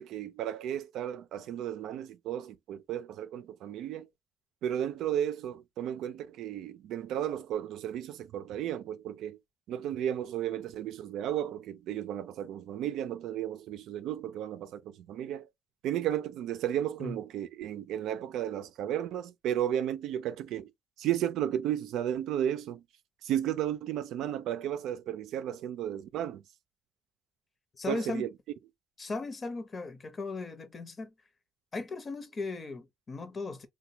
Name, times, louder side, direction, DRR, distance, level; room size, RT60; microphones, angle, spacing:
voice 1, 0.0-4.1 4.6-9.4 9.7-15.5 15.8-20.7 21.0-22.8 23.2-26.4 27.9-28.3, right 11 dB, 85° right, 0.4 m, -33 dB
voice 2, 27.8-28.3 29.0-31.1 31.7-33.7, left 3 dB, 35° left, 0.8 m, -37 dB
3.3 x 2.2 x 2.7 m
cardioid pair, 90°, 0 cm